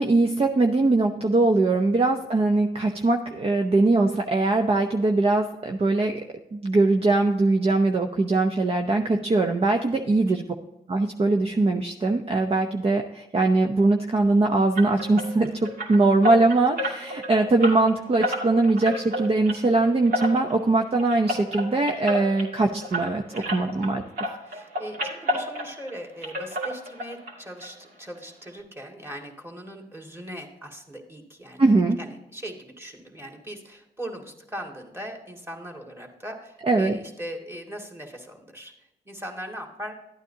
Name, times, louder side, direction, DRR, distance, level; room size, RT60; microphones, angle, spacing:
voice 1, 0.0-6.1 6.5-10.4 10.9-24.0 31.6-32.0 36.7-37.0, right 2 dB, 35° right, 4 dB, 0.7 m, -21 dB
sound 1, 14.8-23.9 24.2-26.0 26.2-27.3 27.6-27.7 28.2-28.3 28.6-28.7, left 1 dB, 70° right, 2.5 m, -31 dB
voice 2, 24.4-31.6 32.0-38.7 39.0-39.9, equal, 15° right, 2 dB, 2.2 m, -39 dB
12.0 x 8.9 x 2.8 m, 0.90 s
supercardioid pair, 55°, 17 cm